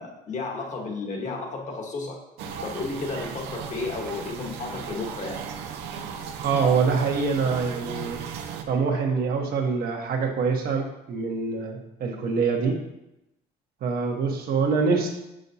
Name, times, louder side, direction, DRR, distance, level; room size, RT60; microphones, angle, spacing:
voice 1, 0.0-2.2 2.6-5.4, left 3 dB, 45° left, 1 dB, 1.4 m, -32 dB
sound 1, 2.4-8.6, right 7 dB, 85° right, 0.6 m, -36 dB
voice 2, 6.4-8.2 8.7-12.8 13.8-15.1, right 5 dB, 65° right, 1 dB, 1.3 m, -25 dB
6.5 x 6.4 x 2.8 m, 0.88 s
cardioid pair, 110°, 17 cm